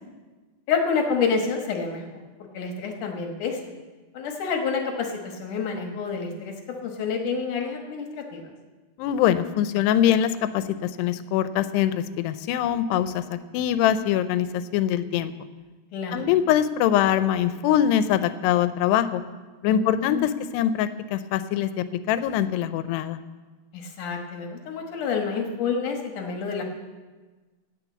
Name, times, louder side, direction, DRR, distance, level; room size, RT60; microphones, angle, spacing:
voice 1, 0.7-2.2 2.5-3.6 4.1-8.4 15.9-16.3 19.6-20.3 23.7-26.6, left 5 dB, 65° left, 3 dB, 2.3 m, -28 dB
voice 2, 9.0-15.3 16.1-19.2 19.6-23.2, left 10 dB, 90° left, 12 dB, 2.8 m, -23 dB
17.0 x 6.6 x 8.2 m, 1.3 s
omnidirectional pair, 4.7 m